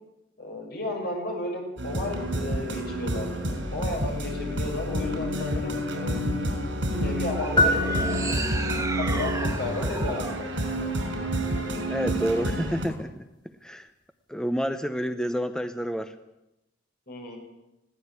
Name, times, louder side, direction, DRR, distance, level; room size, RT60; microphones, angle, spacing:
voice 1, 0.4-3.3 3.7-6.3 6.8-8.6 9.0-10.6 17.1-17.4, left 2 dB, 60° left, 1 dB, 6.7 m, -34 dB
sound 1, 1.8-12.9, equal, 75° right, 5.9 m, -29 dB
sound 2, 7.2-11.6, right 3 dB, 15° right, 1.2 m, -34 dB
sound 3, 7.6-9.0, left 1 dB, 25° left, 2.7 m, -26 dB
voice 2, 11.9-13.9 14.3-16.2, equal, 5° left, 8 dB, 0.7 m, -29 dB
20.0 x 16.5 x 8.2 m, 0.92 s
head